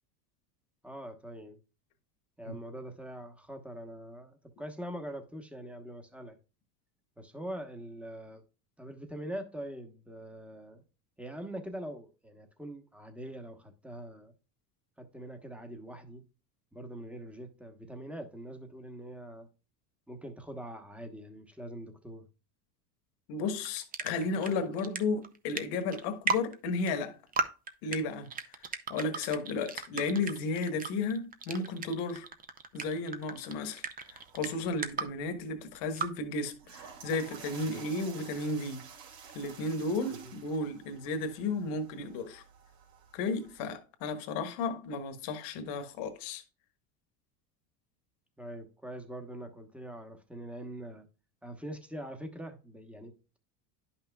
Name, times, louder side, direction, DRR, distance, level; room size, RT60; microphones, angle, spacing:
voice 1, 0.8-1.6 2.4-6.4 7.2-8.4 8.8-10.8 11.2-14.3 15.0-16.2 16.7-19.5 20.1-22.3 37.6-37.8 40.2-40.3 48.4-51.1 51.4-53.4, right 1 dB, 5° right, 1.0 m, -43 dB
voice 2, 23.3-27.2 27.8-32.3 32.7-38.9 39.3-42.4 43.1-46.4, left 3 dB, 60° left, 1.4 m, -34 dB
sound 1, 23.6-24.5 24.8-25.0 25.2-26.6 26.9-27.0 27.3-28.0 28.2-35.0 35.8-36.1, right 5 dB, 20° right, 0.5 m, -34 dB
sound 2, 34.0-43.7, right 7 dB, 70° right, 2.4 m, -52 dB
10.5 x 5.7 x 2.3 m
supercardioid pair, 105°, 48 cm